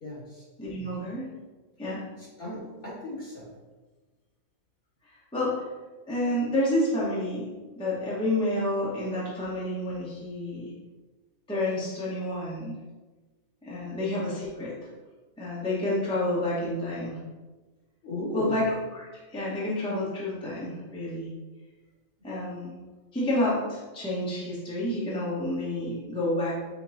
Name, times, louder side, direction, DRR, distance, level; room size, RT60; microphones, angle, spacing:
voice 1, 0.0-0.4 2.2-3.5 13.7-13.9 18.0-18.6, left 1 dB, 40° left, -7 dB, 1.6 m, -36 dB
voice 2, 0.6-1.2 1.8-2.0 5.3-5.5 6.1-7.5 7.8-10.7 11.5-12.8 13.6-14.9 15.4-17.2 18.3-18.6 18.9-21.3 22.2-22.7 23.1-26.5, left 1 dB, 5° left, -8 dB, 0.8 m, -29 dB
5.2 x 2.2 x 4.0 m, 1.2 s
omnidirectional pair, 1.5 m